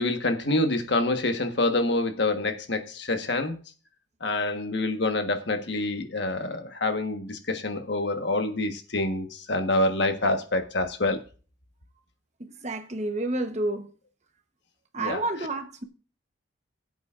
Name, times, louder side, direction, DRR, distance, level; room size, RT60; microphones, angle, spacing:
voice 1, 0.0-3.6 4.2-11.2 15.0-15.2, left 2 dB, 60° left, 1.4 m, -26 dB
voice 2, 12.4-13.9 14.9-15.8, right 2 dB, 35° right, 1.0 m, -30 dB
18.5 x 8.0 x 2.5 m
head